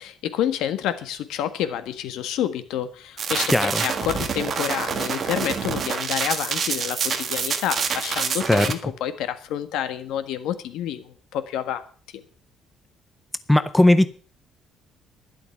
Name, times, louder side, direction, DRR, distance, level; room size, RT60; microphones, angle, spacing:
voice 1, 0.0-11.8 12.1-12.2, left 10 dB, 80° left, 11 dB, 1.6 m, -29 dB
sound 1, 3.2-8.7, right 6 dB, 35° right, 1.6 m, -27 dB
voice 2, 3.5-3.8 8.5-8.7 13.5-14.1, left 1 dB, 5° left, 13 dB, 0.6 m, -17 dB
12.0 x 11.0 x 5.9 m, 0.42 s
cardioid pair, 170°, 0 cm